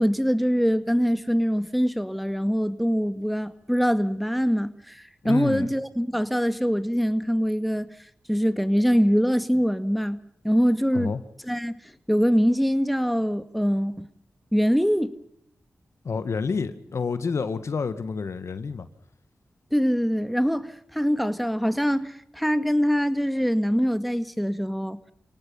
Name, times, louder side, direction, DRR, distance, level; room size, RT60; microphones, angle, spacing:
voice 1, 0.0-7.9 8.3-10.2 10.4-11.1 11.5-11.8 12.1-14.1 14.5-15.2 19.7-25.0, equal, ahead, 2.0 m, -23 dB
voice 2, 5.2-5.7 10.9-11.2 16.0-18.9, left 5 dB, 75° left, 1.6 m, -29 dB
29.5 x 18.5 x 5.5 m
cardioid pair, 45°, 5 cm